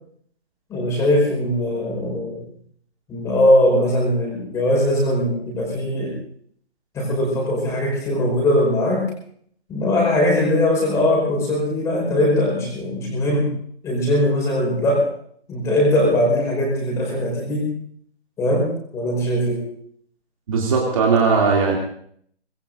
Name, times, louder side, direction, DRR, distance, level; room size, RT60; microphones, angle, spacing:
voice 1, 0.7-2.5 3.1-6.2 6.9-9.1 9.7-13.5 13.8-15.1 15.5-17.7 18.4-19.6, left 1 dB, 10° left, -2 dB, 5.0 m, -20 dB
voice 2, 20.5-21.8, right 5 dB, 30° right, -1 dB, 2.8 m, -18 dB
24.5 x 20.5 x 2.6 m, 0.63 s
figure-of-eight pair, 155°, 32 cm